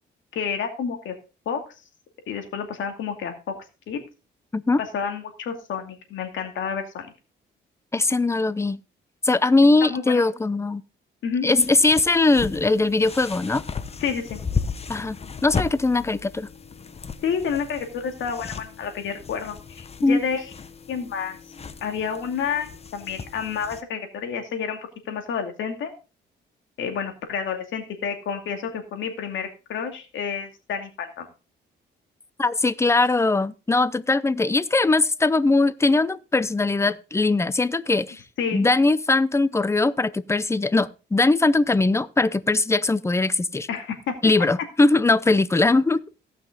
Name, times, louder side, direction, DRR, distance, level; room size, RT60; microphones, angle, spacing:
voice 1, 0.3-1.1 1.5-1.6 2.3-3.5 3.9-4.0 4.9-7.1 9.8-10.2 11.2-11.5 14.0-14.4 17.2-20.5 20.9-21.4 21.8-24.8 25.1-25.9 26.8-31.3 38.4-38.6 43.7-44.1, left 6 dB, 75° left, 2.3 m, -29 dB
voice 2, 7.9-8.8 9.2-10.8 11.4-13.6 14.9-16.5 20.0-20.2 32.4-38.2 38.5-43.7 44.2-46.0, left 3 dB, 15° left, 0.6 m, -20 dB
sound 1, 11.6-23.8, left 5 dB, 30° left, 1.0 m, -35 dB
16.5 x 5.9 x 3.8 m
cardioid pair, 90°, 20 cm